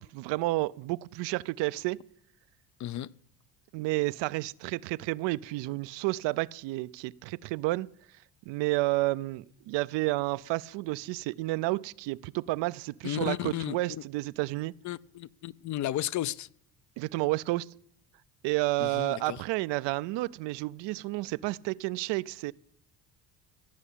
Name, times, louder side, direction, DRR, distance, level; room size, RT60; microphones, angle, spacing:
voice 1, 0.0-2.0 3.7-7.9 8.5-14.7 17.0-17.7 18.4-22.5, right 20 dB, 85° right, 0.6 m, -31 dB
voice 2, 13.0-13.8 14.8-16.5 18.8-19.4, left 13 dB, 45° left, 0.5 m, -33 dB
16.5 x 7.2 x 8.5 m
cardioid pair, 115°, 42 cm